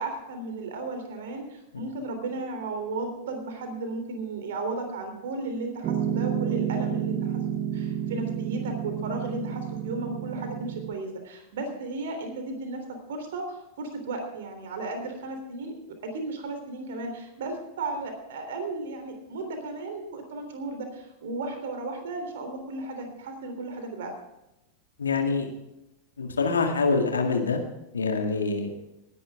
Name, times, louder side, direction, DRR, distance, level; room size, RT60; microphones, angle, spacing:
voice 1, 0.0-7.4 7.7-12.8 13.1-15.7 16.0-24.1, right 2 dB, 60° right, 6 dB, 3.3 m, -34 dB
Piano, 5.8-10.9, right 9 dB, 30° right, 0.9 m, -30 dB
voice 2, 25.0-25.5 26.2-27.6 27.9-28.7, left 4 dB, 70° left, 3 dB, 2.0 m, -25 dB
19.0 x 11.0 x 3.6 m, 0.89 s
figure-of-eight pair, 90°, 0 cm